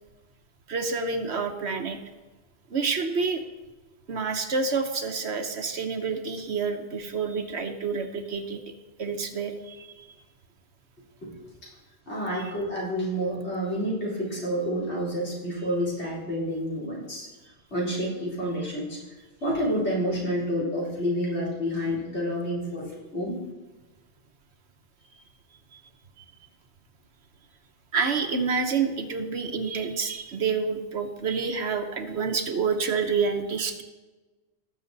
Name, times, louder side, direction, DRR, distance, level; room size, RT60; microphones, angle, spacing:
voice 1, 0.7-2.0 2.7-3.4 4.1-8.6 9.0-10.1 25.7-25.8 26.2-26.3 27.9-33.8, right 5 dB, 70° right, 6 dB, 1.3 m, -28 dB
voice 2, 12.1-17.3 17.7-19.0 19.4-23.4, equal, 70° left, -6 dB, 4.1 m, -29 dB
18.0 x 6.9 x 4.0 m, 1.2 s
omnidirectional pair, 1.2 m